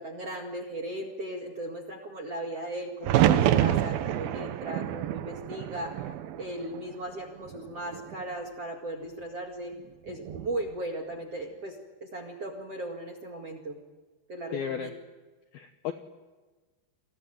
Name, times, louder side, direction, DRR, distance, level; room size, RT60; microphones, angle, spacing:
voice 1, 0.0-6.0 6.4-9.7 10.0-13.8 14.3-14.9, right 1 dB, 50° right, 6 dB, 1.9 m, -37 dB
sound 1, 3.0-7.1 7.4-8.2 10.1-10.6, right 12 dB, 90° right, 2.1 m, -27 dB
voice 2, 14.5-14.9 15.5-15.9, left 8 dB, 75° left, 7 dB, 2.3 m, -33 dB
29.5 x 21.5 x 9.1 m, 1.3 s
omnidirectional pair, 5.8 m